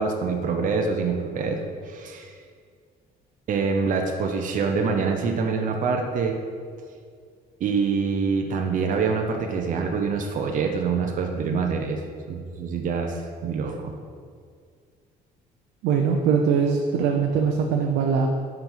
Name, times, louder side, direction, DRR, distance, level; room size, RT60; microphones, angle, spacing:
voice 1, 0.0-2.3 3.5-6.4 7.6-12.0 12.3-14.0, right 5 dB, 50° right, 3 dB, 0.8 m, -25 dB
voice 2, 15.8-18.3, right 6 dB, 85° right, 2 dB, 0.6 m, -22 dB
5.7 x 5.2 x 5.7 m, 2.1 s
cardioid pair, 110°, 17 cm